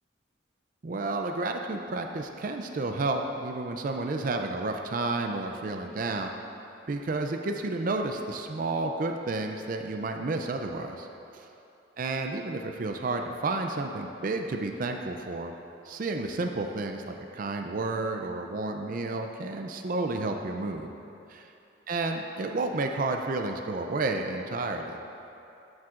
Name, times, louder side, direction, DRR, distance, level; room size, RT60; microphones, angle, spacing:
voice 1, 0.8-6.3 6.9-11.1 11.3-11.5 12.0-15.5 15.8-20.9 21.3-21.5 21.9-25.1, right 3 dB, 45° right, 4 dB, 0.4 m, -31 dB
12.0 x 7.2 x 2.5 m, 2.8 s
head